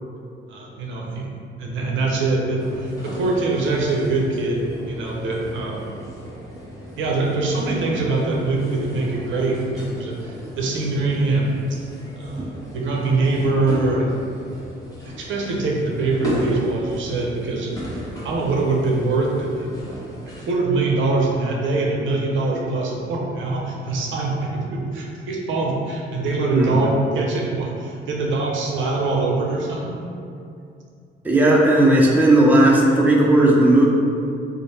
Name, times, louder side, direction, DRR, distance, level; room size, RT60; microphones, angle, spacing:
voice 1, 0.5-1.3 1.6-5.9 7.0-11.5 12.2-12.5 12.7-14.1 15.0-17.7 18.2-19.7 20.5-30.0, right 3 dB, 75° right, -2 dB, 0.7 m, -23 dB
sound 1, 2.6-20.5, equal, 15° left, 1.0 m, -35 dB
voice 2, 31.2-33.9, right 1 dB, 10° right, -3 dB, 0.5 m, -15 dB
3.4 x 2.1 x 4.1 m, 2.4 s
cardioid pair, 90°, 20 cm